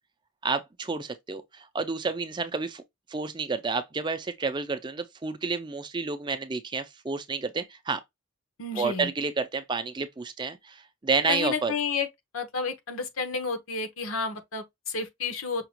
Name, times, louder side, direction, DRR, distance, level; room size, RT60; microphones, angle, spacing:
voice 1, 0.4-2.8 3.1-8.0 8.7-11.7, right 4 dB, 20° right, 0.4 m, -30 dB
voice 2, 8.6-9.1 11.3-12.1 12.3-15.7, left 4 dB, 80° left, 1.0 m, -31 dB
5.8 x 2.4 x 2.9 m
head